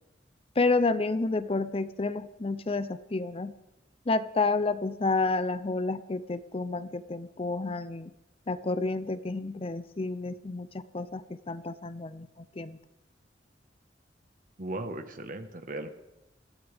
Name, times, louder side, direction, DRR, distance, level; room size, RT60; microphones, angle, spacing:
voice 1, 0.6-3.5 4.1-8.1 8.5-10.7 10.9-12.8, left 3 dB, 35° left, 13 dB, 0.6 m, -30 dB
voice 2, 14.6-15.9, right 2 dB, 50° right, 8 dB, 1.4 m, -37 dB
20.5 x 15.5 x 3.5 m, 0.98 s
head